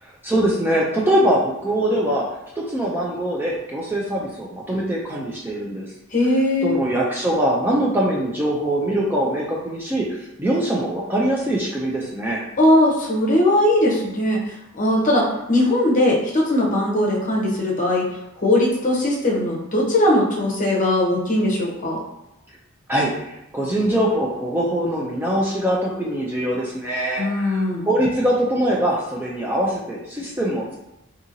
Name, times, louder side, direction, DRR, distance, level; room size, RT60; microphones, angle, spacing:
voice 1, 0.0-2.3 2.6-5.9 6.6-10.1 10.4-12.5 22.9-30.8, right 1 dB, 10° right, -4 dB, 0.3 m, -22 dB
voice 2, 6.1-6.7 12.6-14.4 14.7-18.0 18.4-22.0 27.2-27.9, left 1 dB, 35° left, -3 dB, 0.7 m, -19 dB
2.7 x 2.7 x 2.6 m, 0.87 s
head